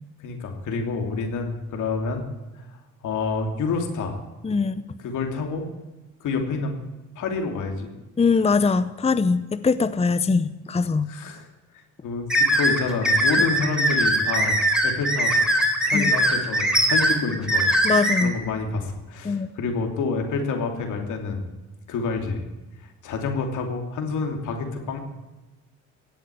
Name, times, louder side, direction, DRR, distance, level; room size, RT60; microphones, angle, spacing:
voice 1, 0.2-2.3 3.0-4.2 5.0-5.7 6.2-6.7 7.1-7.9 11.1-11.4 12.0-15.4 15.8-17.7 18.2-21.4 21.9-22.4 23.0-25.0, left 4 dB, 80° left, 4 dB, 3.0 m, -28 dB
voice 2, 4.4-4.8 8.2-11.1 15.9-16.1 17.8-18.3 19.2-19.5, left 4 dB, 20° left, 13 dB, 0.7 m, -22 dB
sound 1, 12.3-18.2, right 1 dB, ahead, 3.4 m, -21 dB
16.5 x 8.2 x 9.8 m, 1.1 s
cardioid pair, 90°, 30 cm